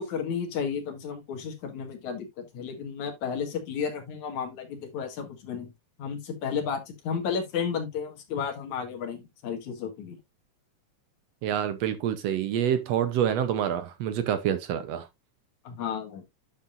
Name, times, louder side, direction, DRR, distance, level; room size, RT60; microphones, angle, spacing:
voice 1, 0.0-5.7 6.0-10.2 15.6-16.3, left 6 dB, 70° left, 3.0 m, -33 dB
voice 2, 11.4-15.1, right 9 dB, 70° right, 1.7 m, -27 dB
9.5 x 7.0 x 2.5 m
omnidirectional pair, 3.5 m